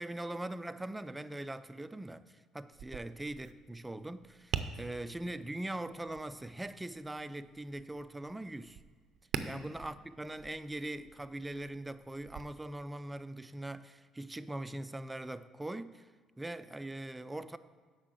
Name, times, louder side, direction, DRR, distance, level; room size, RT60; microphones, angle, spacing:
voice 1, 0.0-8.8 9.4-16.1 16.4-17.6, right 1 dB, 10° right, 0.4 m, -41 dB
Tap, 2.7-12.4, right 8 dB, 65° right, 0.5 m, -45 dB
8.1 x 5.6 x 6.4 m
cardioid pair, 95°, 0 cm